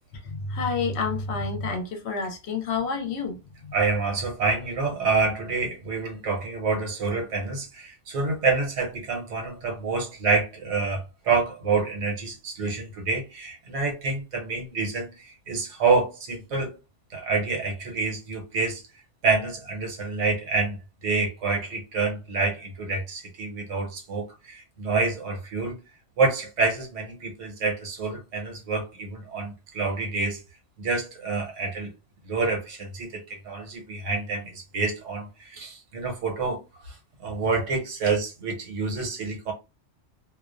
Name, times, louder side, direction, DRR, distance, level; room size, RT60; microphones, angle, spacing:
voice 1, 0.2-3.8, left 4 dB, 70° left, 0.8 m, -29 dB
voice 2, 3.7-16.8 17.1-18.8 19.2-20.8 21.0-25.8 26.2-30.4 30.8-31.9 32.2-39.5, right 4 dB, 85° right, 1.1 m, -27 dB
2.4 x 2.1 x 2.4 m
omnidirectional pair, 1.3 m